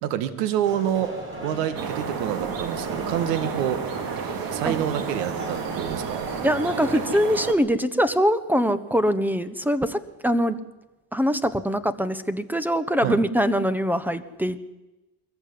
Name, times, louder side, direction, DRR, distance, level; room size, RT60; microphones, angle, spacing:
voice 1, 0.0-1.1 1.4-3.8 4.5-6.3 13.0-13.2, right 10 dB, 85° right, 11 dB, 2.0 m, -27 dB
sound 1, 0.6-7.0, equal, 25° right, 7.3 m, -37 dB
sound 2, 1.7-7.5, right 6 dB, 50° right, 2.5 m, -31 dB
voice 2, 6.4-10.6 11.1-14.6, equal, 5° right, 13 dB, 1.3 m, -23 dB
22.0 x 14.5 x 9.7 m, 1.0 s
supercardioid pair, 100°, 46 cm